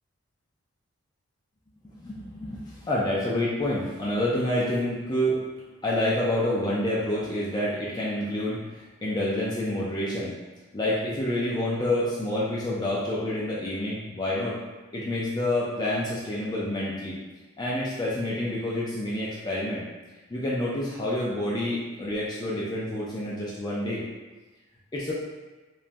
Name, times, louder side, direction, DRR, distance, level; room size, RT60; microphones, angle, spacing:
voice 1, 1.9-5.4 5.8-10.3 10.7-14.6 14.9-17.2 17.6-19.8 20.3-24.0 24.9-25.1, left 1 dB, 20° left, -6 dB, 0.3 m, -28 dB
3.1 x 2.3 x 2.5 m, 1.2 s
head